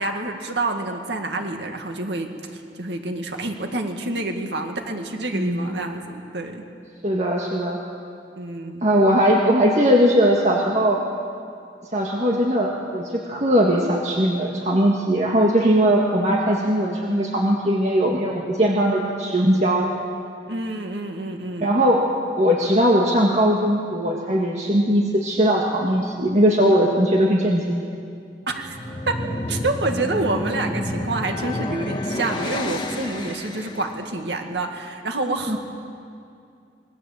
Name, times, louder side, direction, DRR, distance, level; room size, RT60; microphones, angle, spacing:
voice 1, 0.0-6.6 8.4-8.9 20.5-21.7 28.5-28.8 29.1-35.6, right 2 dB, 85° right, 4 dB, 2.0 m, -28 dB
voice 2, 5.3-5.6 7.0-7.8 8.8-11.0 11.9-19.9 21.6-22.1 22.4-27.9 35.5-35.6, equal, 40° right, -1 dB, 1.8 m, -19 dB
sound 1, 28.6-34.0, left 1 dB, 25° left, 1.5 m, -29 dB
26.0 x 21.0 x 7.7 m, 2.4 s
head